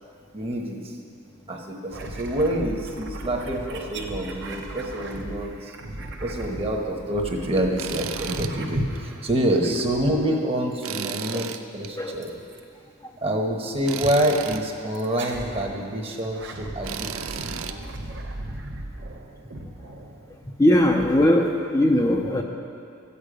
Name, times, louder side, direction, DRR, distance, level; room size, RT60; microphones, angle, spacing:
voice 1, 0.3-1.0 1.5-5.7 6.2-12.3 13.2-17.6, right 1 dB, 25° right, 1 dB, 1.1 m, -27 dB
sound 1, 1.9-9.3 9.7-10.5 12.2-12.6 13.6-13.8 14.9-15.7 16.2-20.5, right 1 dB, 55° right, 0.9 m, -38 dB
Tools, 7.8-8.5 8.9-9.0 10.8-11.9 13.9-14.6 16.8-17.8, right 8 dB, 70° right, 0.5 m, -33 dB
voice 2, 20.6-22.4, left 1 dB, 15° left, 0 dB, 0.5 m, -19 dB
13.5 x 8.4 x 5.0 m, 2.5 s
head